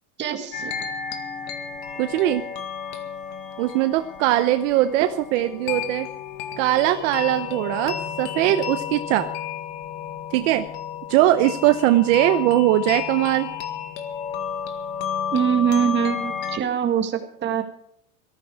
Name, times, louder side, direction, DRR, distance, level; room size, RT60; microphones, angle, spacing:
voice 1, 0.2-0.7 15.3-17.6, right 8 dB, 25° right, 4 dB, 1.9 m, -23 dB
sound 1, 0.5-16.6, left 8 dB, 55° left, 2.0 m, -32 dB
voice 2, 2.0-2.4 3.6-6.1 6.6-9.3 10.3-10.7 11.1-13.5, right 14 dB, 60° right, 8 dB, 1.0 m, -20 dB
17.5 x 14.0 x 4.8 m, 0.71 s
supercardioid pair, 145°, 43 cm